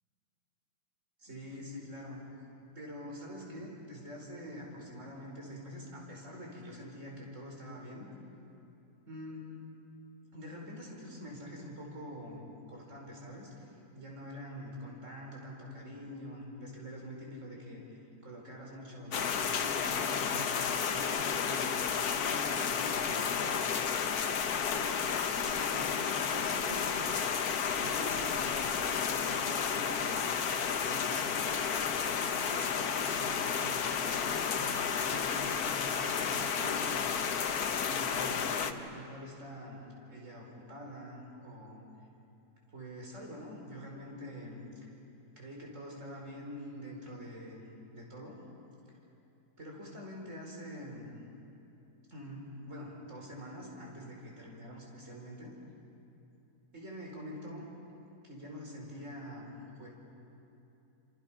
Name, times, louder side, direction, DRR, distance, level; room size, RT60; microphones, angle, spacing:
voice 1, 1.2-2.2 2.7-8.1 9.1-9.6 10.3-12.4 12.7-13.7 13.9-23.8 24.7-25.1 25.4-27.1 27.7-30.4 30.6-31.5 32.1-37.1 37.8-39.8 40.1-41.9 42.7-44.6 45.4-47.6 47.9-48.4 49.6-51.2 52.1-55.5 56.7-57.7 58.2-59.9, equal, 45° right, -2 dB, 5.2 m, -45 dB
sound 1, 19.1-38.7, left 7 dB, 70° left, 1.5 m, -32 dB
29.5 x 27.5 x 5.9 m, 2.9 s
omnidirectional pair, 1.7 m